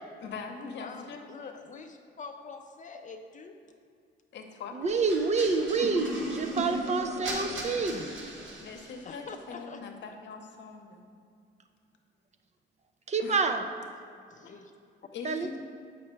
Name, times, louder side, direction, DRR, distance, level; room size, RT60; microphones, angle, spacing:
voice 1, 0.2-1.5 4.3-4.9 7.7-8.2 8.6-11.1 13.2-13.4 15.1-15.5, left 4 dB, 65° left, 3 dB, 0.8 m, -42 dB
voice 2, 0.8-3.5 4.9-5.1 9.1-9.8 14.3-14.7, left 5 dB, 40° left, 5 dB, 0.4 m, -45 dB
voice 3, 4.8-8.0 13.1-13.6 15.2-15.5, right 4 dB, 35° right, 7 dB, 0.4 m, -28 dB
sound 1, 5.1-9.0, right 1 dB, 75° right, 1.1 m, -36 dB
7.1 x 5.7 x 3.2 m, 2.4 s
cardioid pair, 90°, 20 cm